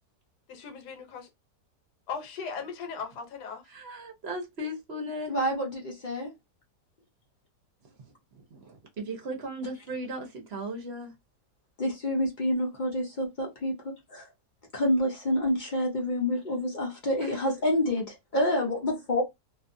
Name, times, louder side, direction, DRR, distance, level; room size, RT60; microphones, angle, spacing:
voice 1, 0.5-1.3 2.1-3.7, left 6 dB, 75° left, 1.3 m, -38 dB
voice 2, 3.7-5.3 8.0-11.1 17.2-17.4, right 1 dB, 55° right, 0.8 m, -37 dB
voice 3, 5.3-6.3 11.8-14.3 14.7-19.2, left 1 dB, 50° left, 0.5 m, -28 dB
2.7 x 2.4 x 2.5 m
omnidirectional pair, 1.7 m